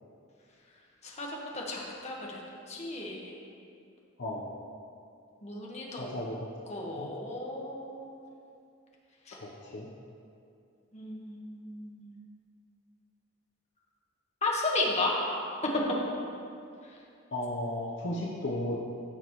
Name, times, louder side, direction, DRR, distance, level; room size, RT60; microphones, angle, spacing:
voice 1, 1.0-2.4 2.7-3.3 5.4-6.1 6.7-8.2 9.3-9.4 10.9-12.1 14.4-15.1, left 2 dB, 35° left, -3 dB, 1.3 m, -34 dB
voice 2, 5.9-6.5 7.0-7.1 9.4-9.9 17.3-18.8, left 1 dB, 60° left, -3 dB, 0.8 m, -34 dB
15.0 x 6.1 x 3.1 m, 2.5 s
head